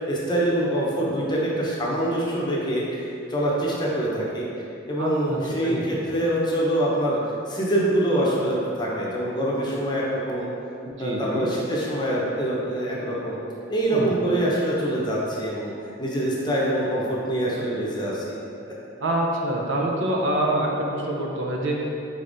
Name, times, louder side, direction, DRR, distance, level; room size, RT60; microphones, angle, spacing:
voice 1, 0.1-3.0 3.3-4.5 4.9-7.2 7.5-10.5 11.0-13.4 13.7-15.7 16.0-18.2, right 1 dB, 25° left, -5 dB, 0.7 m, -25 dB
voice 2, 5.0-6.0 11.0-11.5 13.9-14.1 19.0-21.9, right 1 dB, 80° right, -1 dB, 0.6 m, -26 dB
5.1 x 4.0 x 2.6 m, 2.6 s
head